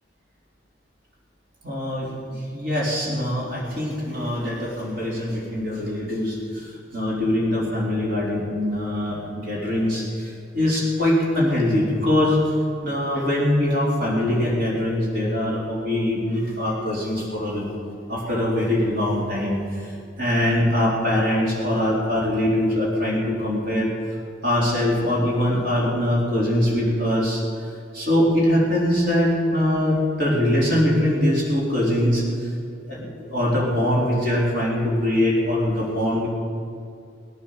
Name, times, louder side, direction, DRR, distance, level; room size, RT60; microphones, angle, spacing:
voice 1, 1.6-12.4 12.8-17.7 18.1-19.9 20.2-23.9 24.4-27.4 27.9-32.2 32.9-36.3, left 1 dB, 55° right, -5 dB, 4.0 m, -22 dB
20.5 x 10.0 x 6.7 m, 2.4 s
head